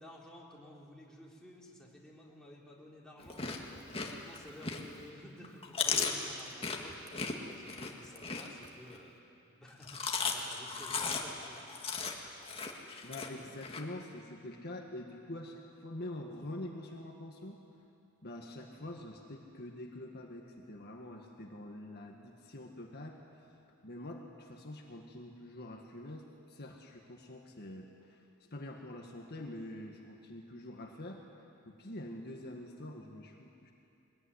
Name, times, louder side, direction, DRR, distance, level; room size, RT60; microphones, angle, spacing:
voice 1, 0.0-9.2 9.4-11.7, left 1 dB, 5° left, -4 dB, 3.7 m, -54 dB
Chewing mastication, 3.2-5.0 5.4-9.0 9.7-13.8, left 5 dB, 25° left, 2.0 m, -36 dB
voice 2, 13.0-17.6 18.2-23.2 23.8-31.2 31.7-33.7, left 1 dB, 50° left, 1 dB, 1.8 m, -45 dB
23.0 x 21.0 x 10.0 m, 2.7 s
head